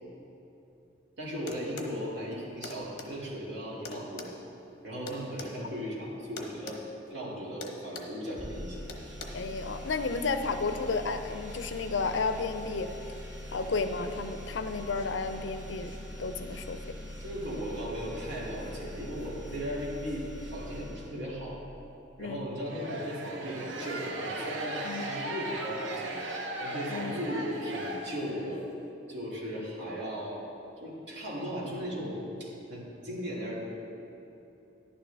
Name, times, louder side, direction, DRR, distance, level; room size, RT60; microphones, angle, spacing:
voice 1, 1.2-4.3 4.8-6.8 7.1-8.8 16.5-16.6 17.2-21.6 22.2-26.2 26.6-28.6 29.1-30.4 30.8-33.6, equal, 60° right, -6 dB, 2.5 m, -37 dB
sound 1, 1.5-2.0 2.6-3.1 3.8-5.5 6.4-6.8 7.1-7.3 7.6-8.2 8.9-9.3, left 3 dB, 55° left, 1.0 m, -42 dB
sound 2, 8.3-21.7, left 1 dB, 25° right, 1.8 m, -43 dB
voice 2, 9.3-12.9 13.5-17.0 22.2-22.4 24.8-25.0 26.9-27.2 29.6-29.7, left 4 dB, 70° left, 9 dB, 0.5 m, -32 dB
sound 3, 22.6-28.6, right 2 dB, 80° right, 0.9 m, -37 dB
11.0 x 10.0 x 3.5 m, 2.9 s
head